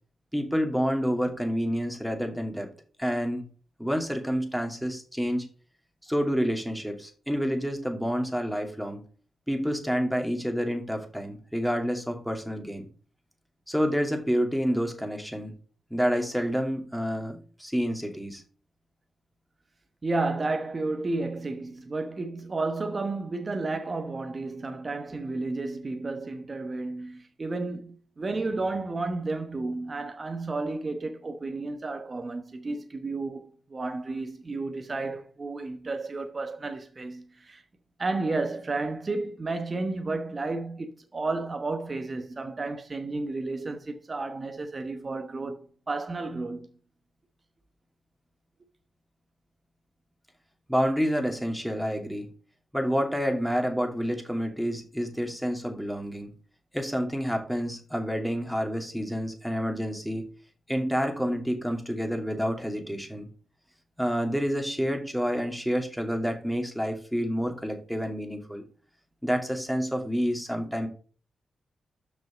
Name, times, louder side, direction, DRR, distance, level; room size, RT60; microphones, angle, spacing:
voice 1, 0.3-2.7 3.0-3.4 3.8-5.5 6.0-9.0 9.5-12.9 13.7-15.5 15.9-18.4 50.7-52.3 52.7-56.3 56.7-60.3 60.7-63.3 64.0-68.6 69.2-70.9, equal, ahead, 2.5 m, -28 dB
voice 2, 20.0-37.6 38.0-46.7, right 3 dB, 40° right, 1.0 m, -32 dB
6.1 x 5.4 x 5.1 m
supercardioid pair, 45°, 0 cm